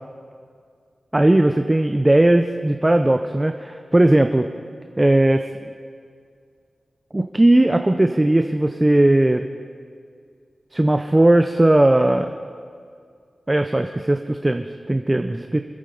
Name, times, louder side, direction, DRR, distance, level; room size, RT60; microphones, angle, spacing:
voice 1, 1.1-4.5 5.0-5.7 7.1-9.5 10.7-12.3 13.5-15.6, right 1 dB, 20° right, 7 dB, 0.5 m, -17 dB
25.5 x 8.6 x 3.9 m, 2.2 s
wide cardioid pair, 90°, 0 cm